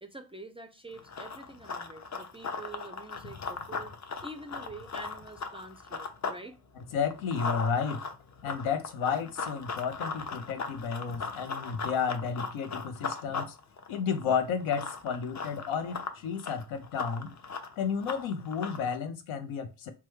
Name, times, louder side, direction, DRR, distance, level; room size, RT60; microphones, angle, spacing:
voice 1, 0.0-6.6, right 2 dB, 15° right, 0.3 m, -46 dB
Run, 0.9-6.4 6.8-19.0, left 4 dB, 40° left, 0.6 m, -38 dB
voice 2, 6.9-8.0 8.4-13.6 13.9-17.3 17.8-19.9, left 6 dB, 85° left, 0.6 m, -32 dB
3.0 x 2.2 x 3.1 m
supercardioid pair, 50°, 46 cm